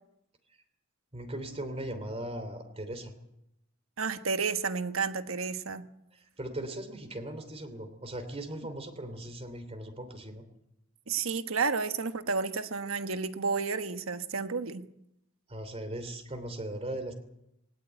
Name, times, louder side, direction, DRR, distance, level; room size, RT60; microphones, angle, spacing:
voice 1, 1.1-3.1 6.1-10.4 15.5-17.1, right 1 dB, 30° right, 8 dB, 3.0 m, -39 dB
voice 2, 4.0-5.8 11.1-14.8, right 5 dB, 90° right, 10 dB, 1.3 m, -31 dB
19.5 x 18.0 x 9.2 m, 0.84 s
head